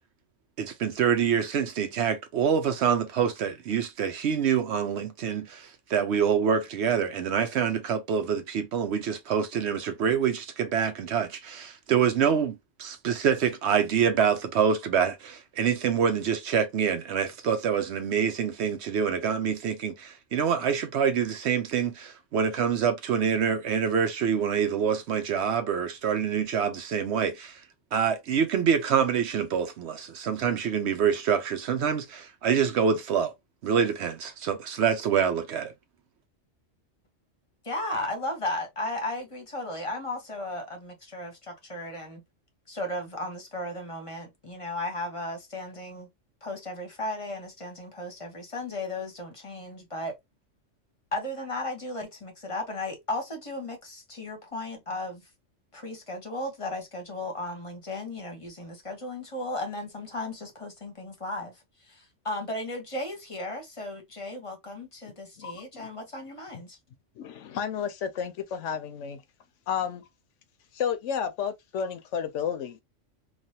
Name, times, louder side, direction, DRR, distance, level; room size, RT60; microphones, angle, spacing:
voice 1, 0.6-27.6 27.9-33.3 33.6-35.7, right 7 dB, 65° right, 0.8 m, -26 dB
voice 2, 37.6-42.2 42.7-46.1 46.4-50.1 51.1-55.3 55.7-66.8, left 1 dB, 30° left, 0.9 m, -35 dB
voice 3, 65.4-65.9 67.2-69.2 69.7-70.0 70.7-72.8, left 7 dB, 75° left, 0.9 m, -32 dB
3.2 x 2.3 x 2.7 m
omnidirectional pair, 1.3 m